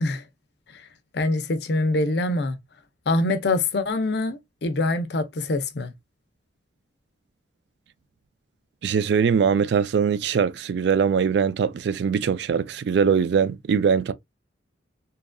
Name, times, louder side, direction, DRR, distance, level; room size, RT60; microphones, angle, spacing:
voice 1, 1.1-2.6 3.1-5.9, left 2 dB, 60° left, 0.5 m, -24 dB
voice 2, 8.8-14.1, right 6 dB, 65° right, 0.3 m, -22 dB
2.8 x 2.4 x 2.2 m
head